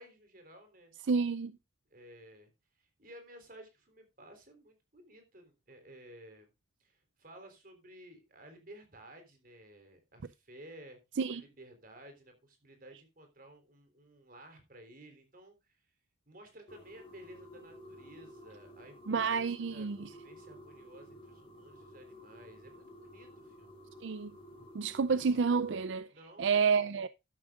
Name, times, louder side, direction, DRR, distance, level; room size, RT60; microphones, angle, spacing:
voice 1, 0.0-0.9 1.9-2.5 2.8-6.5 6.8-11.0 11.3-15.9 16.3-23.7 26.1-27.0, right 1 dB, 50° right, 3.7 m, -55 dB
voice 2, 1.1-1.5 11.2-11.4 19.1-20.0 24.0-24.3 24.7-26.1 26.4-27.1, right 5 dB, 75° right, 0.5 m, -29 dB
sound 1, 16.7-25.8, equal, 30° left, 3.4 m, -53 dB
12.5 x 11.5 x 2.5 m
head